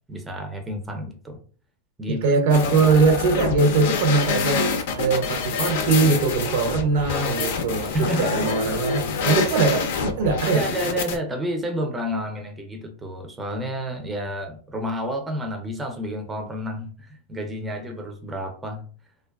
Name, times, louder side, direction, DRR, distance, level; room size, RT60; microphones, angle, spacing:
voice 1, 0.1-1.4 2.0-2.2 7.9-8.5 9.3-9.5 10.5-18.8, equal, 10° right, 0.5 m, -30 dB
voice 2, 2.1-10.7, right 4 dB, 65° right, 0.5 m, -21 dB
sound 1, 2.5-11.2, left 5 dB, 70° left, 0.5 m, -26 dB
2.4 x 2.2 x 2.3 m
hypercardioid pair, 120°, 0 cm